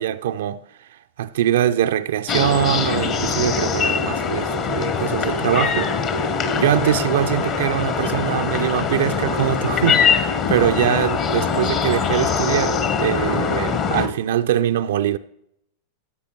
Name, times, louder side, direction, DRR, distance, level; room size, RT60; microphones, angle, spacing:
voice 1, 0.0-6.0 6.6-15.2, right 11 dB, 60° right, 0.4 m, -23 dB
sound 1, 2.3-14.1, left 5 dB, 35° left, 1.0 m, -22 dB
15.5 x 8.2 x 3.0 m
figure-of-eight pair, 90°, 0 cm